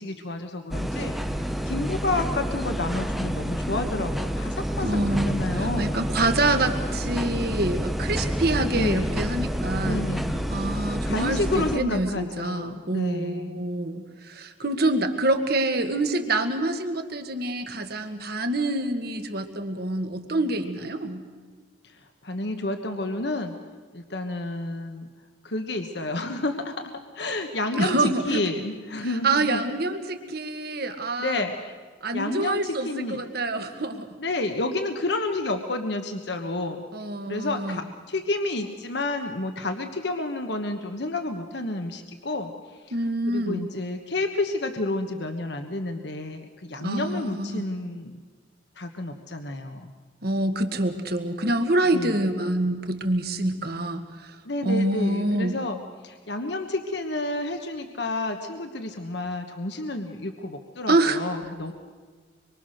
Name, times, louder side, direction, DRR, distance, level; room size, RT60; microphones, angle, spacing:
voice 1, 0.0-6.0 8.7-9.2 9.8-10.5 11.0-13.7 21.8-22.0 22.2-23.5 23.9-25.1 25.4-29.6 31.2-31.8 32.1-33.2 34.2-36.8 37.3-42.5 42.9-43.0 43.3-48.2 48.8-49.9 51.9-52.2 54.4-55.8 56.0-61.7, left 2 dB, 60° left, 6 dB, 1.3 m, -30 dB
sound 1, 0.7-11.8, equal, ahead, 0.8 m, -28 dB
voice 2, 4.8-10.1 10.5-21.2 27.8-28.4 29.2-31.4 32.0-34.1 36.9-37.8 42.9-43.6 46.8-47.7 50.2-54.4 54.6-55.6 60.9-61.2, right 2 dB, 55° right, 7 dB, 1.7 m, -26 dB
25.5 x 23.0 x 6.6 m, 1.5 s
head